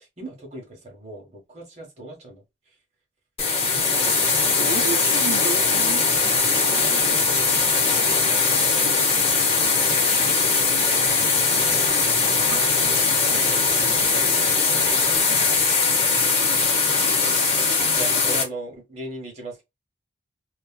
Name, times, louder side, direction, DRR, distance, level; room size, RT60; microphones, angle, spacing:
voice 1, 0.2-2.4 3.7-3.8 10.0-11.5 15.3-15.7 17.9-19.6, right 2 dB, 35° right, 1.2 m, -38 dB
sound 1, 3.4-18.4, left 4 dB, 30° left, 0.9 m, -20 dB
voice 2, 4.6-6.0 6.7-7.2 12.5-12.6 13.3-14.0, right 5 dB, 80° right, 0.5 m, -33 dB
3.1 x 2.4 x 2.2 m
head